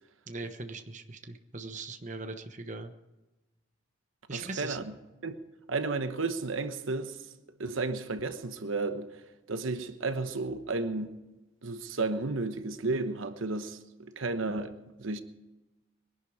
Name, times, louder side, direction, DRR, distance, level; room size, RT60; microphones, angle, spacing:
voice 1, 0.3-2.9 4.3-4.8, right 3 dB, 40° right, 1.1 m, -40 dB
voice 2, 4.3-4.9 5.2-5.4 5.7-7.3 7.6-9.2 9.5-11.1 11.6-14.7 15.0-15.2, right 3 dB, 85° right, 1.1 m, -33 dB
22.0 x 11.5 x 4.9 m
head